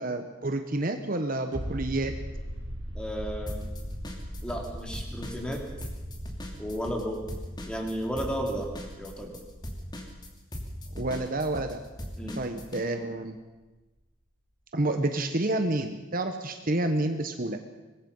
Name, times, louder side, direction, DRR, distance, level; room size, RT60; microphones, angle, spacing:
voice 1, 0.0-2.1 10.9-11.8 12.4-13.4 14.7-17.6, right 2 dB, 45° right, 6 dB, 1.2 m, -29 dB
sound 1, 1.5-12.9 13.1-13.2, equal, 60° right, 3.1 m, -41 dB
voice 2, 2.9-3.6 4.4-5.7 6.6-7.3 7.7-8.7 9.0-9.4 12.2-12.4, equal, 5° left, 1 dB, 3.3 m, -33 dB
sound 2, 3.5-4.7 4.9-12.8, equal, 20° left, 2.6 m, -39 dB
24.5 x 20.0 x 5.6 m, 1.1 s
head